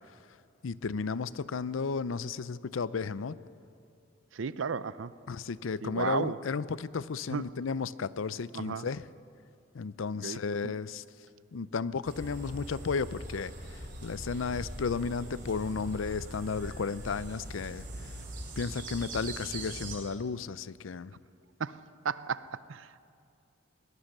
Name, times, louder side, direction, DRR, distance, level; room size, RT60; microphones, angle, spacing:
voice 1, 0.6-3.4 5.3-9.1 9.7-11.0 11.5-18.2 18.6-21.2, left 5 dB, 85° left, 17 dB, 0.5 m, -34 dB
voice 2, 4.3-5.1 5.8-6.4 7.3-7.5 8.5-8.9 10.2-10.7 21.6-21.8 22.0-23.0, right 5 dB, 80° right, 16 dB, 0.5 m, -34 dB
sound 1, 12.0-20.0, right 1 dB, 45° right, 3.7 m, -42 dB
20.5 x 19.5 x 6.6 m, 2.5 s
head